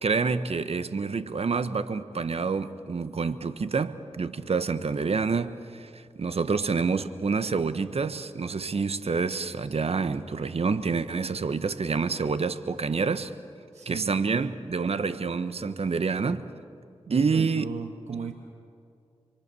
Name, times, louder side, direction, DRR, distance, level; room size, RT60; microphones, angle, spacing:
voice 1, 0.0-13.3 13.9-16.5 17.1-17.6, right 4 dB, 65° right, 1.1 m, -27 dB
voice 2, 13.7-14.5 17.1-18.3, right 6 dB, 80° right, 1.2 m, -37 dB
28.5 x 23.0 x 7.0 m
cardioid pair, 40°, 11 cm